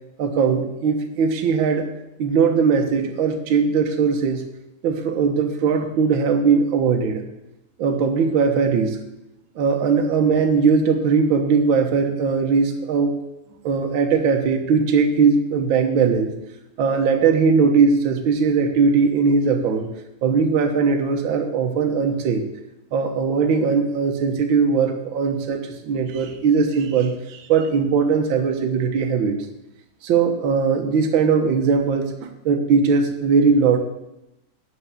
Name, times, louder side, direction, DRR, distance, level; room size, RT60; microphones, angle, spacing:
voice 1, 0.2-1.9 2.2-4.4 4.8-7.2 7.8-9.0 9.6-13.2 13.6-16.3 16.8-19.9 20.2-22.4 22.9-29.4 30.0-33.8, right 5 dB, 60° right, 4 dB, 1.4 m, -19 dB
12.0 x 5.5 x 8.3 m, 0.91 s
omnidirectional pair, 3.3 m